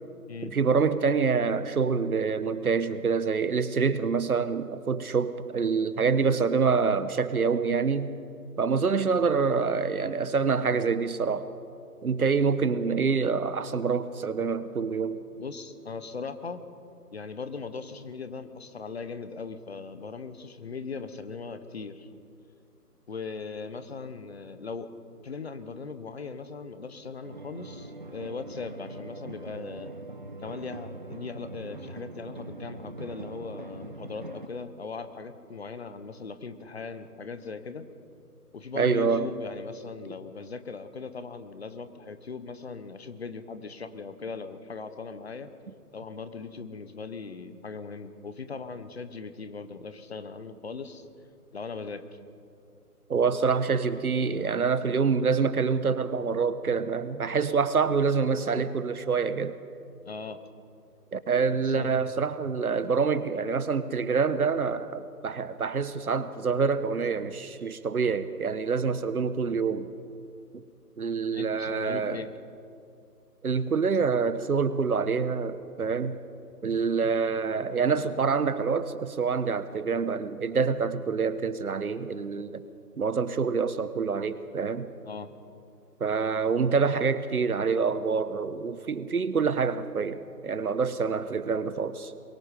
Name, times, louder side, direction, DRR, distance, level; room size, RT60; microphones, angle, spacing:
voice 1, 0.4-8.1 8.6-11.5 12.0-15.2 38.7-39.3 53.1-59.6 61.1-69.9 71.0-72.2 73.4-76.2 76.6-82.6 83.0-84.9 86.0-92.1, right 5 dB, 65° right, 14 dB, 1.1 m, -26 dB
voice 2, 15.4-16.6 17.1-22.1 23.1-24.9 25.2-29.9 30.4-37.9 38.5-45.5 45.9-51.1 51.5-52.2 60.0-60.4 61.5-61.9 71.3-72.4 85.1-85.3, left 4 dB, 40° left, 11 dB, 1.1 m, -39 dB
sound 1, 27.2-34.5, right 2 dB, 35° right, 0.6 m, -42 dB
22.5 x 22.5 x 5.1 m, 2.5 s
figure-of-eight pair, 155°, 47 cm